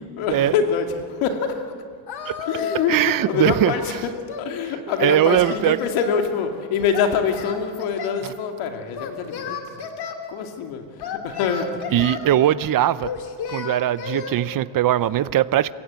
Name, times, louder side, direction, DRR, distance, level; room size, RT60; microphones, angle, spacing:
voice 1, 0.2-1.7 2.5-4.1 4.4-9.9 10.3-12.4, left 6 dB, 85° left, 2.7 m, -25 dB
Singing, 2.1-3.0 3.3-4.5 5.0-6.2 6.9-8.2 8.9-10.2 11.0-12.3 13.0-14.3, left 6 dB, 55° left, 2.6 m, -32 dB
voice 2, 2.9-3.7 5.0-5.8 8.2-8.3 11.9-13.1 13.5-15.7, right 12 dB, 45° right, 0.7 m, -20 dB
29.5 x 16.5 x 8.4 m
cardioid pair, 120°, 48 cm